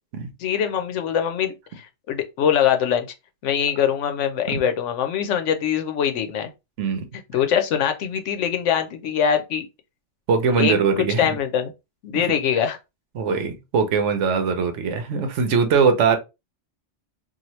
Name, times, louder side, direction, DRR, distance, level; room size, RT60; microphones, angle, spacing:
voice 1, 0.4-3.1 3.4-6.5 7.3-9.7 10.5-11.7 12.0-12.8, left 8 dB, 80° left, 0.9 m, -23 dB
voice 2, 10.3-11.4 12.1-12.2 13.1-16.2, right 5 dB, 80° right, 1.0 m, -21 dB
2.8 x 2.6 x 3.0 m
omnidirectional pair, 1.2 m